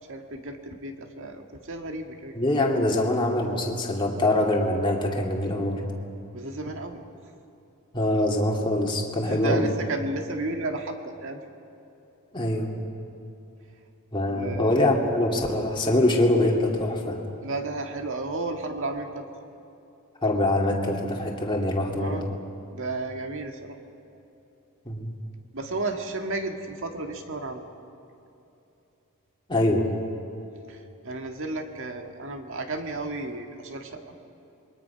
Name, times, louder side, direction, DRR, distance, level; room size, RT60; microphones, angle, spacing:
voice 1, 0.1-2.4 6.3-7.0 9.1-11.4 14.3-14.8 17.4-19.2 22.0-22.2 22.7-23.8 25.5-27.6 30.7-34.1, right 2 dB, 60° right, 4 dB, 1.9 m, -33 dB
voice 2, 2.4-5.8 7.9-9.7 12.3-12.7 14.1-17.2 20.2-22.3 24.9-25.1 29.5-29.9, left 1 dB, 20° left, -1 dB, 2.3 m, -24 dB
26.5 x 22.0 x 5.8 m, 2.9 s
head